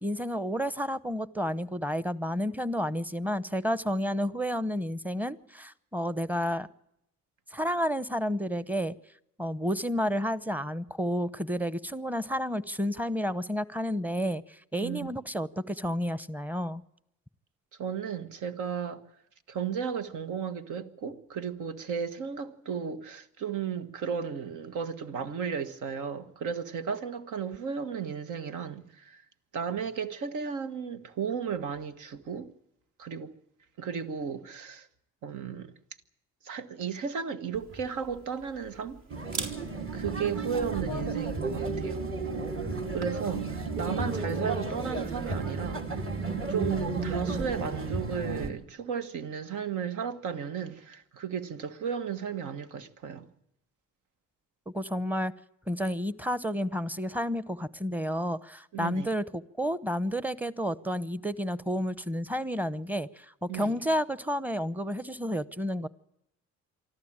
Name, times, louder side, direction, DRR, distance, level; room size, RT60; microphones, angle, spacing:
voice 1, 0.0-6.7 7.5-8.9 9.4-16.8 54.7-55.3 55.7-65.9, equal, 5° right, 0.9 m, -31 dB
voice 2, 17.8-19.0 19.5-29.2 29.5-32.5 33.0-33.3 33.8-34.9 35.2-35.7 36.4-39.0 39.9-42.0 42.9-46.0 46.5-53.3 58.7-59.1 63.5-63.7, right 7 dB, 80° right, 1.6 m, -34 dB
Camera, 37.5-43.4, right 3 dB, 60° right, 3.8 m, -45 dB
sound 1, 39.1-48.5, right 3 dB, 45° right, 3.1 m, -33 dB
24.5 x 13.5 x 8.9 m
cardioid pair, 90°, 30 cm